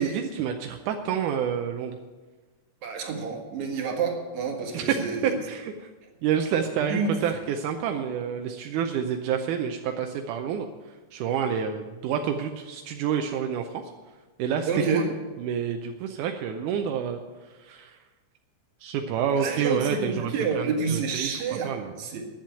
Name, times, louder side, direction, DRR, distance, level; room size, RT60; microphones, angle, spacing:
voice 1, 0.0-2.0 4.7-5.9 6.2-10.7 11.1-13.8 14.4-14.7 14.9-15.1 15.4-17.2 17.6-18.0 18.8-21.3 21.6-21.9, right 7 dB, 85° right, 4 dB, 2.2 m, -28 dB
voice 2, 2.8-5.3 6.9-7.1 14.7-15.1 19.4-21.7 22.0-22.3, right 5 dB, 70° right, 2 dB, 2.9 m, -28 dB
10.5 x 7.4 x 9.1 m, 1.3 s
omnidirectional pair, 3.5 m